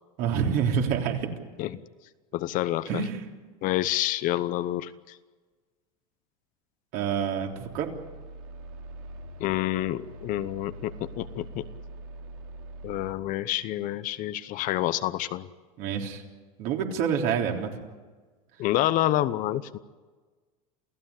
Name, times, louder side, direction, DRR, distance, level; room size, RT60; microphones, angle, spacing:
voice 1, 0.2-1.3 2.9-3.3 6.9-7.9 15.8-16.2 16.6-17.8, right 7 dB, 55° right, 2 dB, 3.7 m, -27 dB
voice 2, 2.3-2.9 3.6-5.2 9.4-11.7 12.8-15.5 18.6-19.8, left 14 dB, 45° left, 13 dB, 0.9 m, -28 dB
sound 1, 7.4-13.1, right 1 dB, 80° right, 3.2 m, -43 dB
28.5 x 16.0 x 8.4 m, 1.4 s
supercardioid pair, 125°, 18 cm